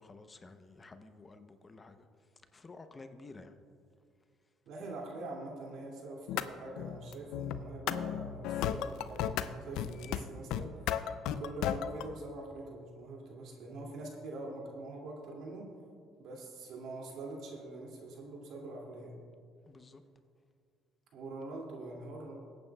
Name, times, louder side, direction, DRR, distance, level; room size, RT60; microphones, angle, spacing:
voice 1, 0.0-2.1 2.5-3.5 19.7-20.0, left 3 dB, 25° left, 9 dB, 0.7 m, -52 dB
voice 2, 4.7-15.7 16.2-19.1 21.1-22.3, right 2 dB, 70° right, -1 dB, 2.4 m, -44 dB
sound 1, 6.3-6.5 6.8-9.5 9.8-10.2 10.5-12.1, left 10 dB, 75° left, 0.4 m, -34 dB
23.0 x 8.9 x 2.3 m, 2.2 s
supercardioid pair, 90°, 0 cm